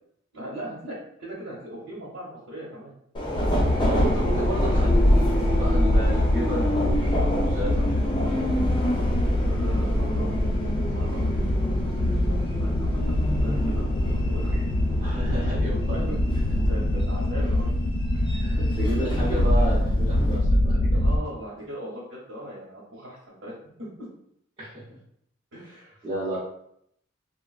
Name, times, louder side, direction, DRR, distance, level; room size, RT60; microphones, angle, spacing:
voice 1, 0.3-2.9 8.7-10.3 10.9-14.7 15.9-17.7 18.1-18.4 20.9-23.5 23.8-24.1 25.5-26.0, equal, 80° right, -7 dB, 0.9 m, -39 dB
Subway metro underground, 3.1-20.4, equal, 25° left, 0.5 m, -31 dB
sound 1, 3.3-21.2, left 1 dB, 80° left, 0.4 m, -23 dB
voice 2, 3.9-8.2 15.0-16.1 18.3-20.8 24.6-25.0 26.0-26.4, right 1 dB, 25° right, -12 dB, 0.8 m, -32 dB
3.3 x 2.2 x 2.3 m, 0.72 s
head